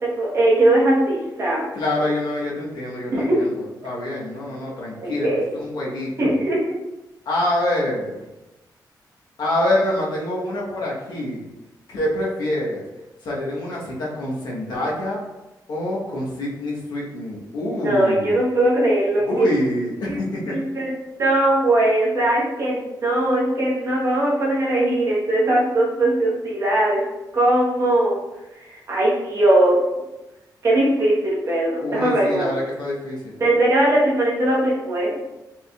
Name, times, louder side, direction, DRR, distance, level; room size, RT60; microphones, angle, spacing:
voice 1, 0.0-1.6 3.1-3.5 5.0-5.5 6.2-6.6 17.8-19.5 20.1-20.2 20.5-20.9 21.2-27.0 27.3-28.2 28.6-29.8 30.6-32.5 33.4-35.2, right 1 dB, 40° right, -5 dB, 1.1 m, -20 dB
voice 2, 1.7-5.3 5.5-6.4 7.3-8.2 9.4-11.4 11.9-12.8 13.2-15.2 15.7-18.4 19.2-20.5 31.8-33.3, left 1 dB, 70° left, -4 dB, 1.1 m, -26 dB
4.5 x 3.6 x 2.3 m, 1.0 s
wide cardioid pair, 145°, 7 cm